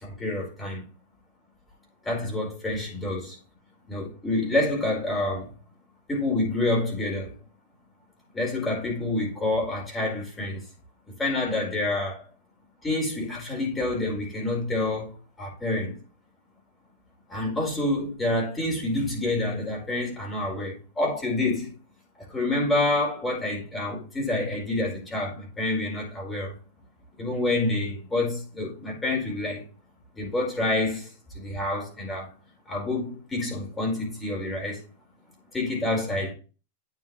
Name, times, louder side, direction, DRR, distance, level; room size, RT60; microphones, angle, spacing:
voice 1, 0.0-0.8 2.0-3.4 3.9-5.5 6.1-7.3 8.3-10.6 11.2-12.2 12.8-16.0 17.3-21.7 22.3-26.5 27.2-29.6 30.2-32.3 32.7-34.8 35.5-36.3, left 2 dB, 15° left, 4.6 m, -28 dB
9.4 x 6.0 x 3.2 m
hypercardioid pair, 125°, 0 cm